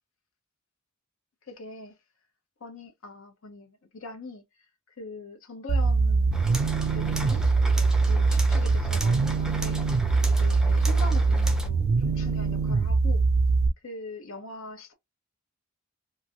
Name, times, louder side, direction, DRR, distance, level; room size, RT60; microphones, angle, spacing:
voice 1, 1.5-2.0 2.6-4.4 4.9-6.4 6.9-7.5 7.7-9.8 10.4-13.2 13.8-14.9, left 2 dB, 75° left, 0.9 m, -42 dB
sound 1, 5.7-13.7, right 4 dB, 75° right, 0.4 m, -23 dB
sound 2, 6.3-11.7, equal, 5° right, 0.5 m, -38 dB
2.9 x 2.6 x 2.7 m
head